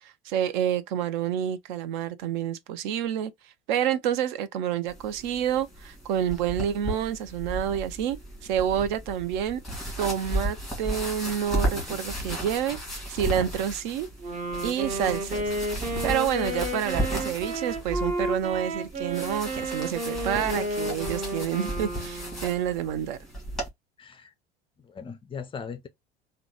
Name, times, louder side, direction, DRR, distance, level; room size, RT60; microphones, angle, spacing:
voice 1, 0.0-3.3 3.7-9.6 10.0-14.1 14.6-15.5 16.0-23.2, right 9 dB, 55° right, 0.5 m, -28 dB
sound 1, 4.9-23.7, equal, ahead, 1.8 m, -35 dB
Wind instrument woodwind instrument, 14.2-22.5, right 1 dB, 25° right, 0.9 m, -32 dB
voice 2, 24.0-24.3 24.8-25.9, left 6 dB, 20° left, 0.4 m, -38 dB
3.7 x 2.2 x 2.9 m
figure-of-eight pair, 70°, 30 cm